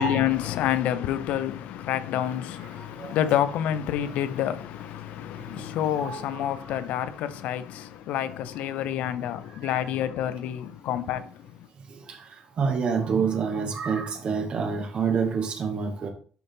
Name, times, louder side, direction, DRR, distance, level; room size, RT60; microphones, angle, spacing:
voice 1, 0.0-11.7, left 11 dB, 85° left, 0.6 m, -28 dB
voice 2, 2.8-3.2 5.5-6.8 9.6-9.8 12.1-12.2 12.6-16.1, right 5 dB, 50° right, 2.0 m, -28 dB
11.5 x 4.0 x 3.6 m
cardioid pair, 105°, 2 cm